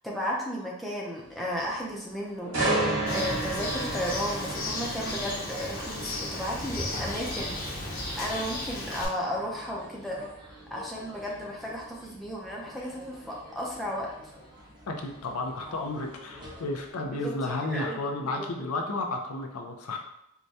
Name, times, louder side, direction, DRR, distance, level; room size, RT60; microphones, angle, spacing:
voice 1, 0.0-2.6 3.1-7.8 8.2-10.2 10.7-14.1 17.2-18.7, equal, ahead, -4 dB, 0.5 m, -34 dB
sound 1, 1.2-16.9, left 1 dB, 20° right, 1.0 m, -50 dB
sound 2, 2.5-16.4 16.8-17.1, right 2 dB, 75° right, 1.5 m, -35 dB
Bird, 3.1-9.1, left 2 dB, 40° left, 0.7 m, -35 dB
voice 2, 14.9-20.0, left 2 dB, 85° left, 3 dB, 0.5 m, -32 dB
4.6 x 2.2 x 2.7 m, 0.81 s
head